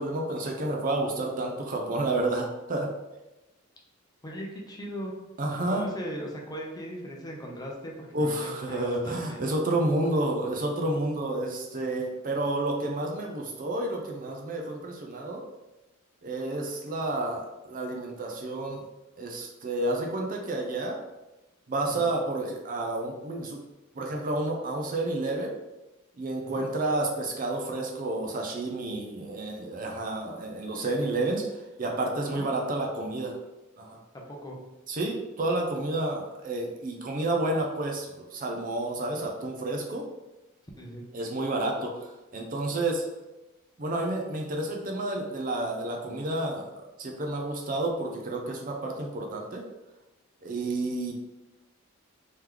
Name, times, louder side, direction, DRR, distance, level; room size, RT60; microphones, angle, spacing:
voice 1, 0.0-2.9 5.4-5.9 8.1-15.4 16.2-18.8 19.2-21.0 21.7-23.6 24.0-25.5 26.2-31.4 31.8-33.4 33.8-34.0 34.9-40.0 41.1-43.0 43.8-46.7 47.0-49.6 50.4-51.1, right 2 dB, 40° right, 1 dB, 0.5 m, -30 dB
voice 2, 4.2-5.1 5.5-9.4 21.8-22.1 26.4-26.6 32.3-32.7 34.1-34.6 40.8-41.0, equal, 20° left, -1 dB, 0.6 m, -39 dB
3.1 x 3.0 x 3.7 m, 1.0 s
head